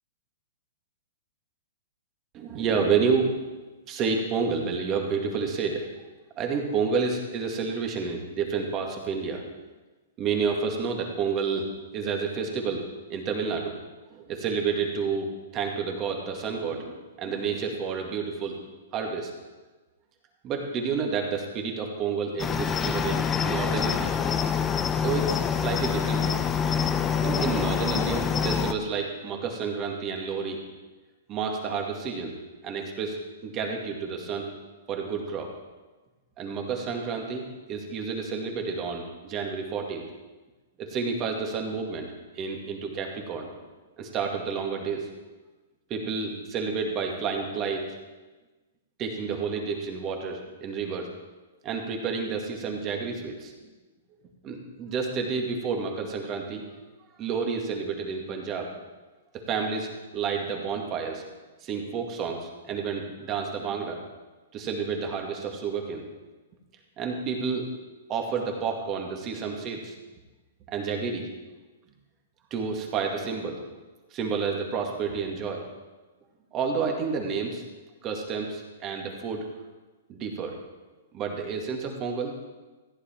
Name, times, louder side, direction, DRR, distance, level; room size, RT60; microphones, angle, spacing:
voice 1, 2.3-3.4 3.9-5.9 6.4-9.4 10.2-12.8 13.1-13.8 14.1-18.6 18.9-19.3 20.4-24.2 25.0-26.6 27.2-30.6 31.3-32.3 32.6-34.5 34.9-35.5 36.4-40.0 40.8-42.1 42.4-43.5 44.0-45.1 45.9-47.9 49.0-51.1 51.6-53.5 54.4-56.6 57.2-58.7 59.5-61.2 61.6-64.0 64.5-66.1 67.0-67.7 68.1-69.9 70.7-71.3 72.5-73.6 74.1-75.6 76.5-77.6 78.0-79.5 80.1-80.5 81.1-82.4, right 5 dB, 30° right, 2 dB, 2.0 m, -30 dB
Cricket, 22.4-28.7, left 7 dB, 15° left, 0.6 m, -26 dB
15.0 x 9.8 x 4.4 m, 1.2 s
hypercardioid pair, 145°, 0 cm